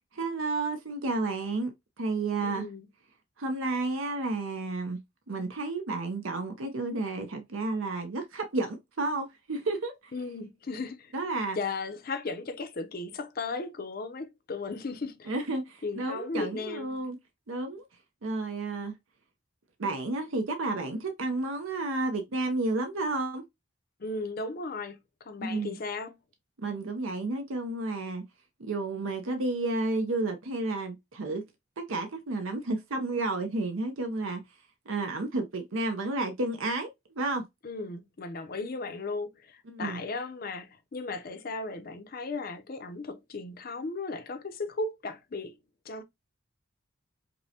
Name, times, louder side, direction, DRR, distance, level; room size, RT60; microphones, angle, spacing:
voice 1, 0.1-1.7 2.0-2.7 3.4-5.0 5.3-10.1 11.1-11.6 15.3-17.2 17.5-17.8 18.2-18.9 19.8-23.4 25.4-25.8 26.6-28.2 28.6-31.4 31.8-34.4 34.9-36.9 37.1-37.5 39.7-40.0, right 2 dB, 80° right, 0.7 m, -31 dB
voice 2, 2.4-2.9 10.1-11.1 11.6-15.3 15.8-16.9 24.0-25.0 25.2-26.2 37.6-45.6 45.9-46.0, left 3 dB, 45° left, 0.5 m, -36 dB
5.2 x 2.1 x 2.8 m
head